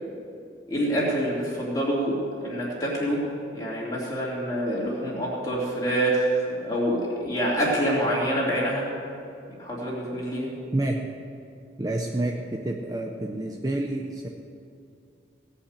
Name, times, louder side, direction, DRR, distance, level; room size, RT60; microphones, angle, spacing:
voice 1, 0.7-3.2 3.5-6.3 6.6-8.8 9.6-10.5, equal, 20° left, -6 dB, 3.1 m, -26 dB
voice 2, 10.7-11.0 11.8-14.3, right 1 dB, 20° right, 1 dB, 0.6 m, -28 dB
17.0 x 5.8 x 8.2 m, 2.5 s
head